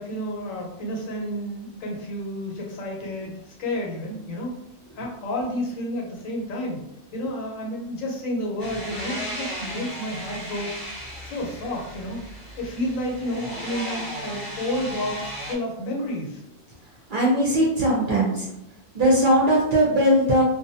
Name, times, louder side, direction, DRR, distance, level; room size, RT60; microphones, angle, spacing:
voice 1, 0.0-3.3 3.6-4.5 5.0-6.8 7.1-10.7 11.2-12.2 12.6-16.4, left 1 dB, 85° left, -1 dB, 1.1 m, -30 dB
sound 1, 8.6-15.5, equal, 35° left, 0.3 m, -35 dB
voice 2, 17.1-18.5 18.9-20.4, right 1 dB, 55° right, -4 dB, 0.6 m, -19 dB
2.5 x 2.2 x 2.6 m, 0.83 s
omnidirectional pair, 1.3 m